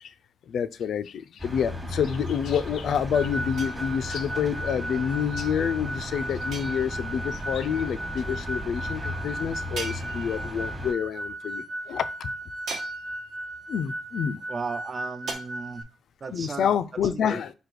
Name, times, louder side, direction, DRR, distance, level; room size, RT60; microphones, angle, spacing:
voice 1, 0.5-12.3 13.7-14.4 16.3-17.5, left 8 dB, 65° left, 0.3 m, -28 dB
sound 1, 1.4-10.9, left 1 dB, 15° right, 1.2 m, -36 dB
sound 2, 3.1-15.8, right 1 dB, ahead, 0.7 m, -36 dB
sound 3, 3.6-4.3 6.5-7.3 9.7-10.7 12.7-13.5 15.3-15.4, right 3 dB, 65° right, 1.1 m, -39 dB
voice 2, 14.5-15.8 16.2-16.7 17.0-17.4, right 4 dB, 35° right, 0.3 m, -35 dB
5.0 x 2.2 x 4.6 m
cardioid pair, 90°, 0 cm